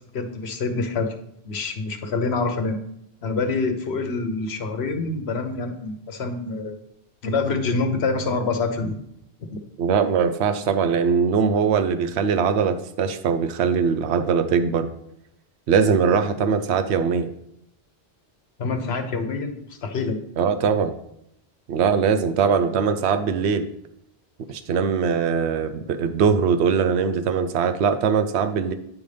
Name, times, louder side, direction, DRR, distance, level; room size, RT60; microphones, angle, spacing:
voice 1, 0.1-1.2 1.4-2.8 3.2-6.8 7.2-9.0 9.5-9.6 18.6-20.2, left 3 dB, 75° left, 6 dB, 1.2 m, -26 dB
voice 2, 9.8-14.9 15.7-17.3 20.4-21.0 21.7-23.7 24.5-28.7, right 6 dB, 85° right, 9 dB, 0.9 m, -21 dB
9.4 x 5.3 x 3.3 m, 0.75 s
omnidirectional pair, 1.1 m